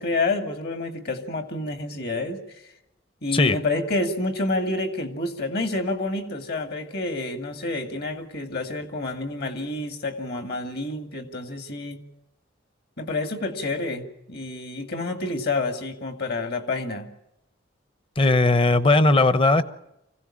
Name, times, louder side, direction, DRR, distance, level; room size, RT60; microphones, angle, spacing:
voice 1, 0.0-2.4 3.2-12.0 13.0-17.1, left 2 dB, 55° left, 6 dB, 2.4 m, -28 dB
voice 2, 18.2-19.6, left 2 dB, 30° left, 13 dB, 0.9 m, -18 dB
25.5 x 16.5 x 8.8 m, 0.87 s
head